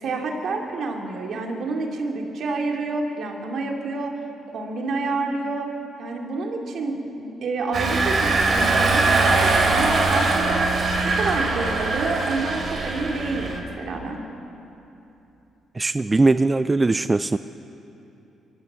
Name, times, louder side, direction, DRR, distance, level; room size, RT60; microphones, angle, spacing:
voice 1, 0.0-4.1 4.5-5.7 6.0-10.7 11.0-14.2, right 3 dB, 65° right, 1 dB, 3.0 m, -28 dB
Engine, 7.7-13.6, right 3 dB, 50° right, 3.6 m, -21 dB
voice 2, 15.7-17.4, right 3 dB, 20° right, 12 dB, 0.4 m, -20 dB
23.5 x 16.0 x 7.6 m, 2.9 s
cardioid pair, 90°, 0 cm